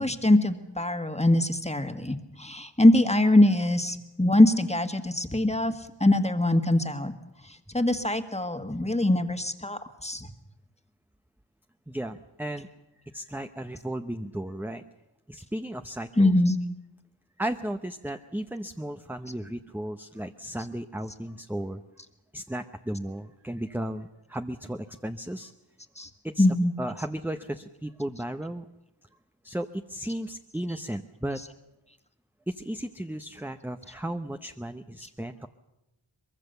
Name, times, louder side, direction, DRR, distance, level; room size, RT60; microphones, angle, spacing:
voice 1, 0.0-7.1 7.5-10.3 16.2-16.6 26.0-26.1 26.4-26.7 31.4-31.5, left 1 dB, 15° left, 7 dB, 1.7 m, -23 dB
voice 2, 11.9-12.7 13.0-14.8 15.3-16.3 17.4-21.8 22.3-25.5 26.2-26.5 26.8-28.7 29.4-31.4 32.5-35.5, right 1 dB, 5° right, 7 dB, 0.8 m, -35 dB
23.5 x 22.0 x 6.8 m, 0.93 s
wide cardioid pair, 50°, 44 cm